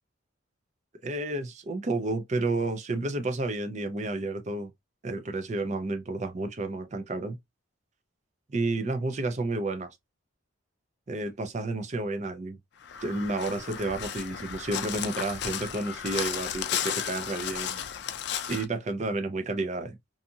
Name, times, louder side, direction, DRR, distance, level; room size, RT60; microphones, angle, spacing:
voice 1, 1.0-4.7 5.0-7.4 8.5-10.0 11.1-12.6 13.0-17.8 18.5-20.0, right 2 dB, 35° right, 0.5 m, -31 dB
Crow, 12.8-18.7, left 9 dB, 55° left, 0.3 m, -34 dB
2.6 x 2.4 x 2.6 m
head